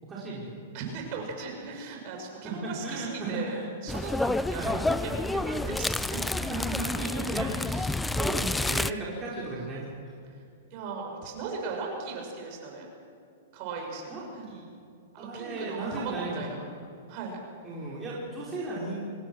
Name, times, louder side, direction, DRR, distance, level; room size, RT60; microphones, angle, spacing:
voice 1, 0.0-0.6 2.4-3.7 4.5-4.7 6.4-9.9 14.1-14.7 15.2-16.5 17.6-19.0, right 2 dB, 20° right, -6 dB, 4.9 m, -36 dB
voice 2, 0.7-3.6 3.8-6.4 7.4-7.5 10.7-12.9 13.5-14.4 15.1-16.6 17.1-17.4, right 4 dB, 45° right, 1 dB, 6.9 m, -37 dB
sound 1, 3.9-8.9, left 2 dB, 5° left, 0.5 m, -29 dB
25.5 x 19.0 x 6.3 m, 2.5 s
hypercardioid pair, 140°, 0 cm